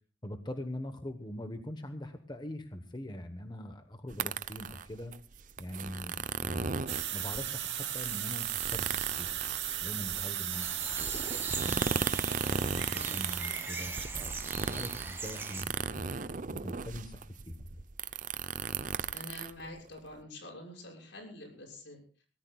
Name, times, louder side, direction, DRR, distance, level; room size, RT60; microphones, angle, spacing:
voice 1, 0.2-5.1 5.6-6.8 7.1-8.9 9.2-9.3 9.8-10.7 11.5-11.9 12.4-17.6, left 1 dB, 25° left, 7 dB, 1.0 m, -42 dB
sound 1, 4.1-20.2, right 5 dB, 45° right, 0.6 m, -36 dB
sound 2, 6.9-14.1, right 12 dB, 65° right, 2.9 m, -36 dB
sound 3, 10.5-15.6, right 3 dB, 15° right, 2.0 m, -41 dB
voice 2, 12.9-13.3 19.1-22.0, left 1 dB, 80° left, 0 dB, 6.7 m, -46 dB
24.0 x 18.0 x 2.3 m, 0.41 s
head